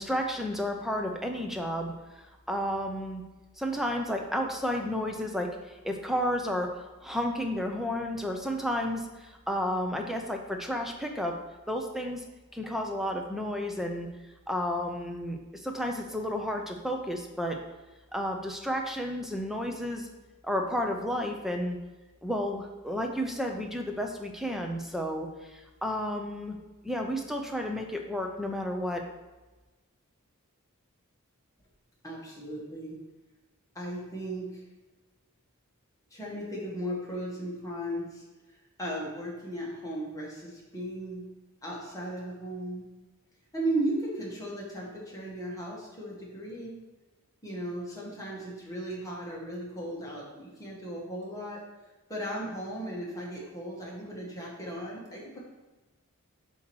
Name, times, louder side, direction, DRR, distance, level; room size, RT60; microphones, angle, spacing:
voice 1, 0.0-2.2 2.5-3.2 3.6-11.4 11.7-12.2 12.5-14.1 14.5-17.6 18.1-20.1 20.4-21.8 22.2-26.6 26.8-29.0, equal, ahead, 3 dB, 0.6 m, -32 dB
voice 2, 32.0-33.0 33.7-34.6 36.1-41.3 41.6-42.9 43.5-46.8 47.4-51.6 52.1-55.4, right 1 dB, 15° left, -5 dB, 1.7 m, -36 dB
7.7 x 3.0 x 6.2 m, 1.2 s
head